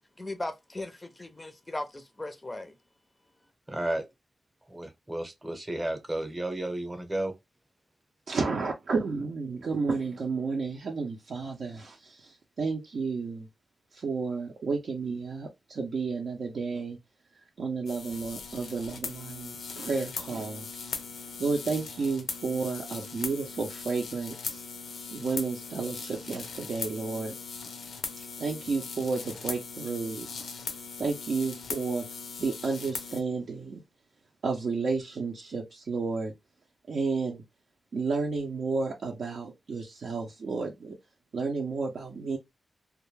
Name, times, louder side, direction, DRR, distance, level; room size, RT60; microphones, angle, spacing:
voice 1, 0.2-2.7, left 2 dB, 20° left, 0.4 m, -37 dB
voice 2, 3.7-4.1 4.7-7.3, right 1 dB, 20° right, 0.7 m, -32 dB
voice 3, 8.3-13.5 13.9-17.0 17.6-20.7 21.4-24.6 25.1-27.4 28.4-30.5 31.0-32.1 32.4-33.8 34.4-36.3 36.9-37.4 37.9-40.9 41.3-42.4, right 4 dB, 70° right, 0.5 m, -31 dB
sound 1, 17.9-33.2, left 5 dB, 80° left, 0.4 m, -39 dB
2.2 x 2.1 x 3.1 m
cardioid pair, 85°, 0 cm